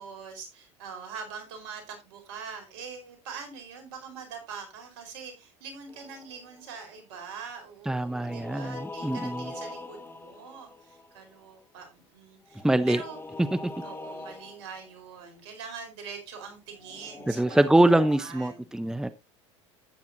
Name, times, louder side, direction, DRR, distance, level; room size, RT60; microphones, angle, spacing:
voice 1, 0.0-13.2 13.8-17.4 17.8-18.9, right 6 dB, 75° right, 4.7 m, -43 dB
sound 1, 5.9-6.7 7.9-11.5 12.5-14.9 16.8-18.2, left 2 dB, 15° left, 1.7 m, -42 dB
voice 2, 7.9-9.5 12.6-13.0 13.5-13.6 17.3-19.1, right 1 dB, 5° right, 0.8 m, -24 dB
12.0 x 9.4 x 2.7 m
hypercardioid pair, 85°, 15 cm